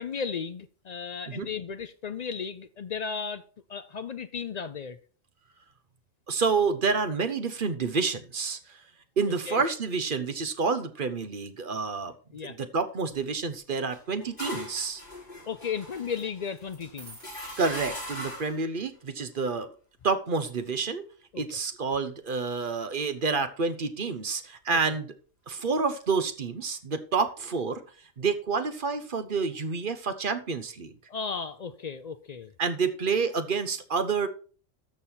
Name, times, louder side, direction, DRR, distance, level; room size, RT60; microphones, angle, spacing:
voice 1, 0.0-5.0 9.5-9.6 12.3-12.6 15.5-17.2 21.3-21.4 24.7-24.8 31.1-32.5, left 6 dB, 60° left, 0.4 m, -35 dB
voice 2, 6.3-8.8 9.2-12.1 12.6-15.0 17.6-19.7 20.0-21.0 21.3-25.1 25.5-27.8 28.2-30.9 32.6-34.3, right 4 dB, 45° right, 1.0 m, -28 dB
sound 1, 13.1-13.6 15.9-16.2 16.6-18.6, right 2 dB, 65° right, 4.4 m, -52 dB
sound 2, 13.9-18.6, left 1 dB, 40° left, 5.5 m, -40 dB
13.5 x 5.5 x 4.4 m
omnidirectional pair, 1.4 m